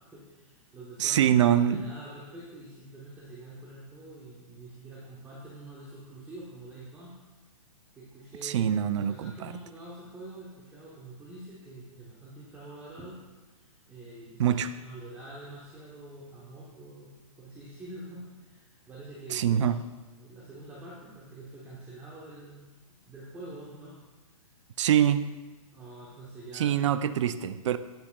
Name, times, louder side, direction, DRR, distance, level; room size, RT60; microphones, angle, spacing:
voice 1, 0.1-7.1 7.9-13.2 13.5-19.7 20.2-22.6 23.0-24.0 25.7-26.7, right 2 dB, 10° right, -6 dB, 0.9 m, -46 dB
voice 2, 1.0-1.8 8.4-9.5 14.4-14.7 19.3-19.8 24.8-25.3 26.5-27.8, right 10 dB, 55° right, 13 dB, 0.4 m, -24 dB
11.0 x 6.9 x 2.3 m, 1.2 s
hypercardioid pair, 155°, 19 cm